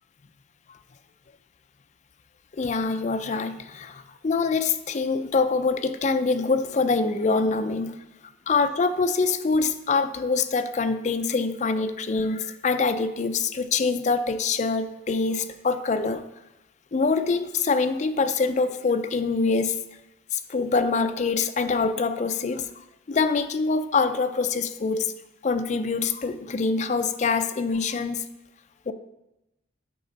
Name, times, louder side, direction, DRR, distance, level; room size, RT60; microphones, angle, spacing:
voice 1, 2.5-8.0 8.5-16.2 16.9-19.8 20.3-22.7 23.1-25.1 25.4-28.2 28.9-29.0, left 4 dB, 40° left, 10 dB, 0.4 m, -25 dB
8.4 x 4.9 x 4.0 m, 0.93 s
head